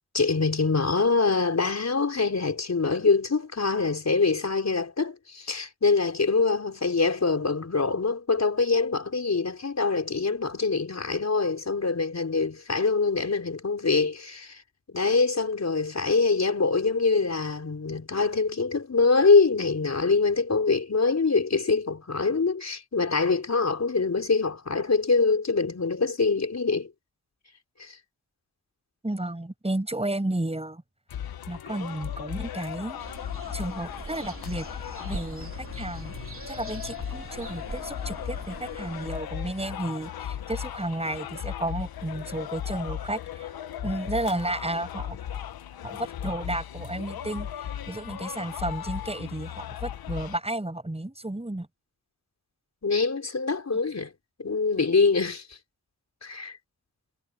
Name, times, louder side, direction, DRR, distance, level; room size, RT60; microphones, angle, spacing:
voice 1, 0.1-14.6 14.9-26.9 27.8-28.0 52.8-54.1 54.4-55.6 56.2-56.6, left 4 dB, 45° left, 4.9 m, -24 dB
voice 2, 29.0-30.8 31.5-33.0 33.5-34.7 35.0-36.1 36.5-43.5 43.8-45.2 45.8-47.5 47.9-51.7, right 1 dB, 15° right, 6.5 m, -32 dB
sound 1, 31.1-50.4, left 10 dB, 80° left, 1.5 m, -37 dB
sound 2, 33.0-39.1, right 3 dB, 35° right, 3.5 m, -42 dB
supercardioid pair, 45°, 36 cm